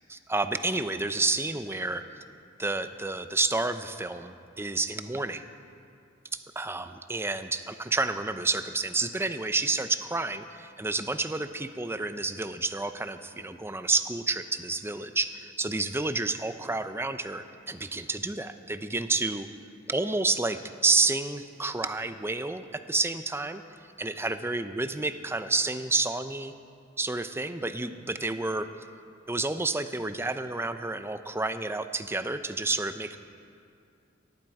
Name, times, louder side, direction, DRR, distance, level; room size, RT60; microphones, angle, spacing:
voice 1, 0.1-2.0 2.6-5.5 6.3-19.5 19.9-23.6 24.0-26.5 27.0-28.7 29.3-33.2, right 3 dB, 10° right, 10 dB, 0.6 m, -30 dB
19.0 x 13.5 x 4.8 m, 2.4 s
head